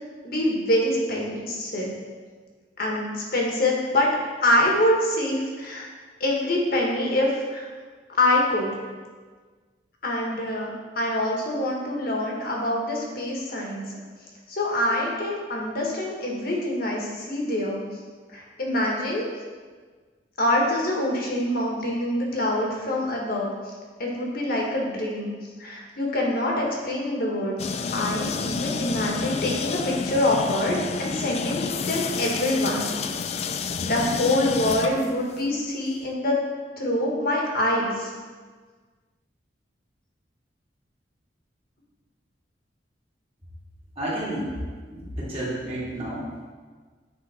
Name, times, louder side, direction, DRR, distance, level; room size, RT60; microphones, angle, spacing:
voice 1, 0.2-1.9 2.8-4.1 4.4-5.9 6.2-7.7 8.2-8.7 10.0-13.8 14.5-17.8 18.3-19.2 20.4-23.5 24.0-25.3 25.6-27.5 27.9-32.9 33.8-36.4 36.8-38.1, left 1 dB, 55° left, -2 dB, 1.5 m, -25 dB
sound 1, 27.6-35.5, left 5 dB, 35° left, 0.3 m, -30 dB
voice 2, 44.0-44.5 44.9-46.2, right 1 dB, 35° right, -8 dB, 2.3 m, -30 dB
9.6 x 3.8 x 4.3 m, 1.5 s
head